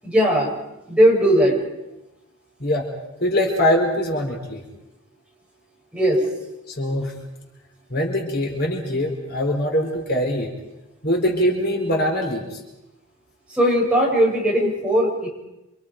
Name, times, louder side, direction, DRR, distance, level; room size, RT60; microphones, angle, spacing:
voice 1, 0.0-0.6 0.9-1.6 5.9-6.2 13.5-15.3, equal, 5° right, -4 dB, 8.0 m, -18 dB
voice 2, 3.2-4.6 6.7-7.1 7.9-10.5 11.0-12.6, equal, 50° left, 1 dB, 4.4 m, -22 dB
29.5 x 27.0 x 5.3 m, 0.97 s
head